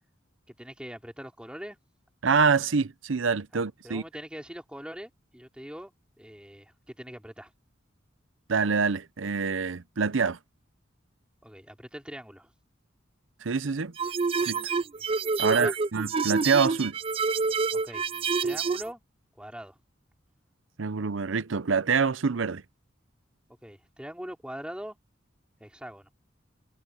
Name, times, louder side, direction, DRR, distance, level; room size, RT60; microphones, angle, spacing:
voice 1, 0.6-1.8 3.5-7.5 11.4-12.5 15.0-15.1 15.4-15.7 17.7-18.1 18.4-19.0 19.4-19.8 23.6-25.0 25.6-26.1, equal, 5° right, 3.4 m, -42 dB
voice 2, 2.2-4.0 8.5-10.4 13.4-13.9 14.5-14.6 15.4-17.0 20.8-22.6, right 5 dB, 75° right, 0.7 m, -26 dB
sound 1, 14.0-18.9, right 4 dB, 30° right, 0.4 m, -28 dB
head